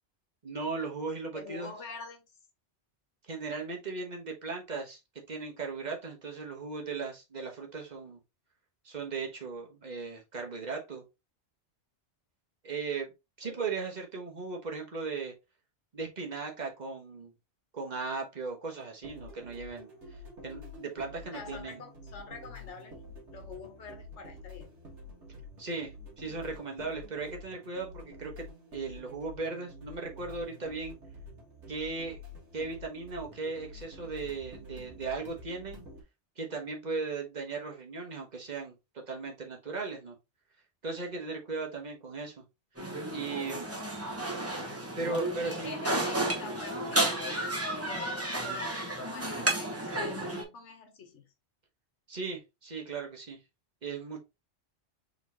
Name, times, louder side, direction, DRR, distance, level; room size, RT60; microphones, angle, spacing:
voice 1, 0.4-1.7 3.3-5.0 5.3-8.2 8.8-11.0 12.6-13.1 13.4-15.3 15.9-17.3 17.7-20.2 20.4-21.8 25.6-28.5 28.7-31.0 31.7-32.2 32.5-35.8 36.4-38.7 39.1-40.2 40.8-42.4 43.1-43.7 45.0-45.8 52.1-53.4 53.8-54.2, right 4 dB, 40° right, 1 dB, 1.3 m, -37 dB
voice 2, 1.3-2.2 13.4-13.6 21.3-23.0 23.3-24.7 45.4-51.2, left 4 dB, 80° left, 5 dB, 1.4 m, -46 dB
sound 1, 18.8-36.0, left 2 dB, 90° right, 2.0 m, -48 dB
sound 2, 42.8-50.4, right 1 dB, 15° right, 1.0 m, -32 dB
4.2 x 3.9 x 2.8 m, 0.24 s
omnidirectional pair, 1.2 m